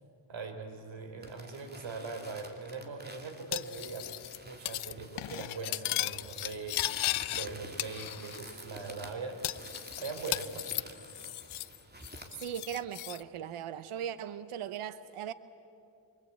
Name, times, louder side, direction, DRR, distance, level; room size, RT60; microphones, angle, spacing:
voice 1, 0.3-4.1 4.4-6.9 7.3-10.8, right 4 dB, 65° right, 6 dB, 3.7 m, -41 dB
sound 1, 1.2-12.3, right 1 dB, 20° right, 2.9 m, -50 dB
Cutlery silverware, 3.5-4.4 4.7-4.9 5.2-7.5 7.8-8.5 8.8-8.9 9.4-11.8 12.0-13.2, left 15 dB, 80° left, 0.6 m, -36 dB
voice 2, 12.4-15.3, right 9 dB, 90° right, 14 dB, 0.9 m, -38 dB
25.5 x 25.0 x 8.5 m, 2.6 s
cardioid pair, 95°, 49 cm